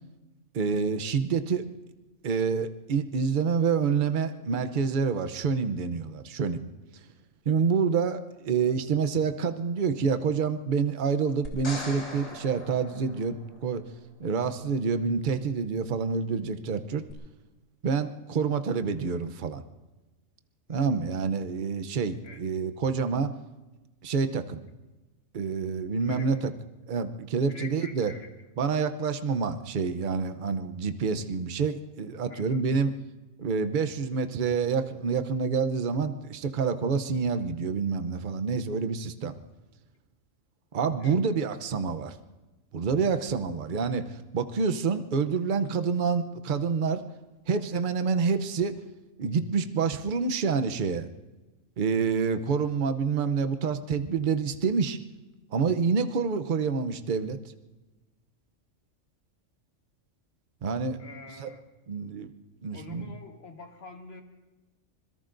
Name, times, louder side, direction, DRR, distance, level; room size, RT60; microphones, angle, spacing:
voice 1, 0.5-1.7 2.2-6.6 7.5-13.8 14.2-17.0 17.8-19.6 20.7-23.3 24.0-24.6 25.3-26.5 26.9-28.1 28.6-33.0 33.4-39.3 40.7-42.1 42.7-47.0 47.5-48.8 49.2-51.1 51.8-55.0 55.5-57.4 60.6-61.0 61.4-61.5 61.9-62.3 62.6-63.1, right 5 dB, 45° right, 9 dB, 0.8 m, -27 dB
sound 1, 11.4-13.7 17.1-17.2, left 1 dB, 85° left, 3.2 m, -40 dB
voice 2, 26.0-26.4 27.5-28.3 32.3-32.6 41.0-41.2 56.5-56.6 61.0-61.6 62.7-64.2, left 3 dB, 50° left, 4 dB, 1.7 m, -46 dB
25.5 x 22.0 x 2.6 m, 1.1 s
omnidirectional pair, 1.3 m